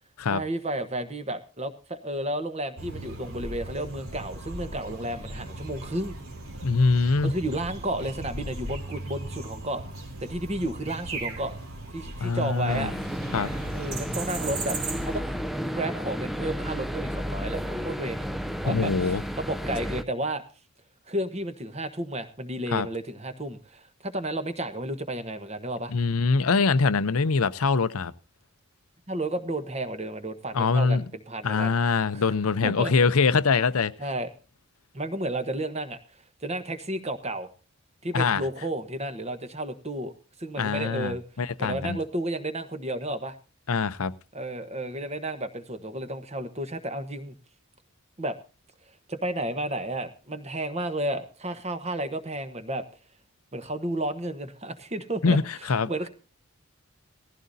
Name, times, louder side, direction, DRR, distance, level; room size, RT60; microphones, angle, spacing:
voice 1, 0.3-6.1 7.2-9.8 10.2-11.5 11.9-12.9 13.7-15.4 15.7-18.3 18.6-20.4 21.1-25.9 29.1-31.7 32.1-32.2 32.6-32.9 34.0-34.3 34.9-36.0 36.4-37.5 38.0-40.1 40.4-41.2 41.6-43.4 44.3-47.4 48.2-48.4 49.1-52.8 53.5-55.4 55.9-56.1, right 1 dB, 30° right, 1.1 m, -32 dB
sound 1, 2.8-15.2, right 2 dB, 75° right, 2.9 m, -38 dB
voice 2, 6.6-7.3 12.2-12.9 13.3-13.5 18.7-19.2 22.7-22.9 25.9-28.1 30.5-31.0 31.4-33.9 38.1-38.4 40.6-42.0 43.7-44.1 55.2-55.9, left 4 dB, 80° left, 0.7 m, -23 dB
sound 2, 12.7-20.0, equal, ahead, 0.5 m, -32 dB
18.0 x 15.0 x 2.7 m
head